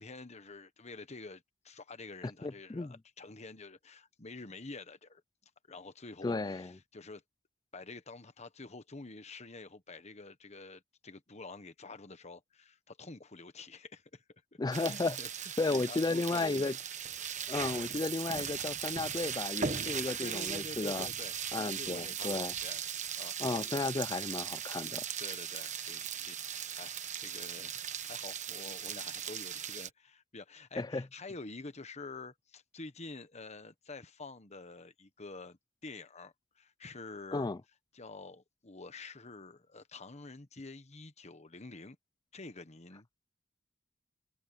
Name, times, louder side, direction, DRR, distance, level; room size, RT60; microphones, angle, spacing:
voice 1, 0.0-5.2 5.7-7.2 7.7-14.2 14.5-14.6 14.8-16.7 17.2-17.3 20.1-22.8 23.2-23.6 24.7-24.8 25.2-37.5 37.9-42.0 42.3-43.3, left 3 dB, 35° left, 1.3 m, -48 dB
voice 2, 2.4-2.9 6.2-6.7 14.6-15.2 15.6-16.7 17.5-21.1 21.5-22.5 23.4-25.0 30.8-31.0 37.3-37.6, left 3 dB, 20° left, 0.4 m, -33 dB
sound 1, 14.7-29.9, right 8 dB, 40° right, 1.1 m, -38 dB
head